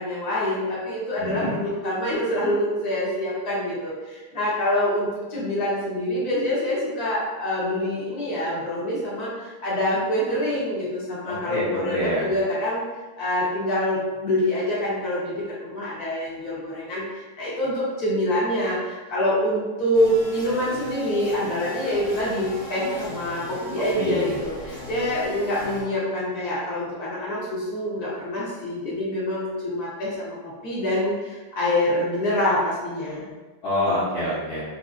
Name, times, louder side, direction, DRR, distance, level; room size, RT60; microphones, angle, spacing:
voice 1, 0.0-12.8 13.2-30.4 30.6-33.3, left 1 dB, 55° left, -8 dB, 1.3 m, -26 dB
voice 2, 1.2-1.5 11.3-12.3 24.0-24.3 33.6-34.6, left 1 dB, 75° left, -10 dB, 1.8 m, -26 dB
sound 1, 19.9-25.8, left 2 dB, 35° left, 0.5 m, -38 dB
4.9 x 2.5 x 2.4 m, 1.3 s
omnidirectional pair, 2.3 m